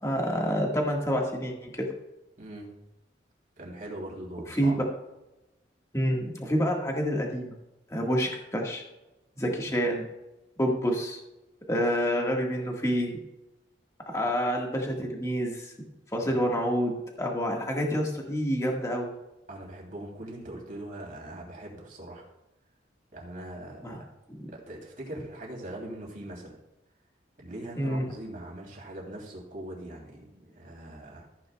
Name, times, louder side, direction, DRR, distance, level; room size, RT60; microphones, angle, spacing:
voice 1, 0.0-1.9 4.5-4.7 5.9-7.5 7.9-8.8 9.4-10.0 10.6-11.2 11.7-13.2 14.1-15.7 16.1-19.1 23.8-24.0 24.3-24.5 27.8-28.1, equal, 15° left, 0 dB, 1.6 m, -28 dB
voice 2, 2.4-2.7 3.6-4.8 16.2-16.4 19.5-22.3 23.1-24.1 24.5-26.5 27.4-31.3, right 1 dB, 45° right, -2 dB, 3.0 m, -41 dB
14.5 x 9.2 x 2.3 m, 0.96 s
head